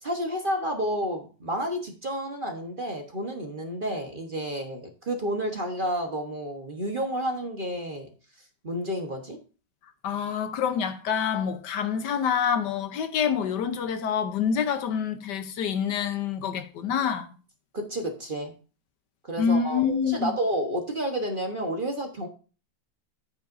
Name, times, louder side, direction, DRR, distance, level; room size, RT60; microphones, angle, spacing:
voice 1, 0.0-8.1 8.6-9.4 17.7-18.5 19.3-22.3, equal, 35° right, 1.2 m, -30 dB
voice 2, 10.0-17.3 19.4-20.3, left 7 dB, 75° left, 1.4 m, -26 dB
10.5 x 9.0 x 2.6 m
omnidirectional pair, 1.9 m